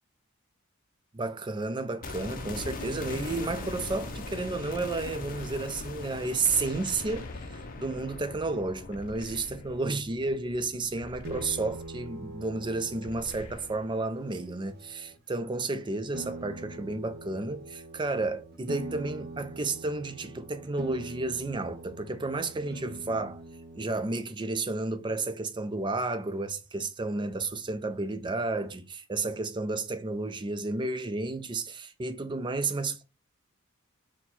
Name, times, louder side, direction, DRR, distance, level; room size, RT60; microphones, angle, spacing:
voice 1, 1.1-23.4 23.7-33.0, right 3 dB, 20° right, 0.4 m, -32 dB
sound 1, 2.0-12.0 12.3-12.4, left 3 dB, 40° left, 0.6 m, -40 dB
sound 2, 6.9-8.0 8.9-10.0 11.0-12.1 13.0-14.1, left 3 dB, 85° left, 0.5 m, -48 dB
sound 3, 11.3-15.1 16.1-23.9, right 2 dB, 45° right, 0.9 m, -43 dB
4.2 x 2.2 x 4.3 m
head